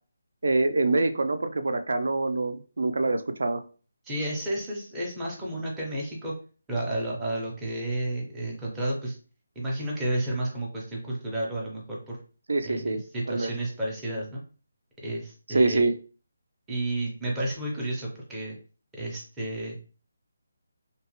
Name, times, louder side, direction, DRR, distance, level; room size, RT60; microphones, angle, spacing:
voice 1, 0.4-3.6 12.5-13.0 13.3-13.5 15.5-15.9, right 2 dB, 65° right, 9 dB, 0.3 m, -25 dB
voice 2, 4.1-6.3 6.7-9.2 9.6-12.2 12.6-14.4 15.0-15.9 16.7-18.6 19.0-19.8, right 1 dB, 5° right, -5 dB, 0.5 m, -31 dB
2.8 x 2.0 x 2.9 m, 0.38 s
hypercardioid pair, 180°, 0 cm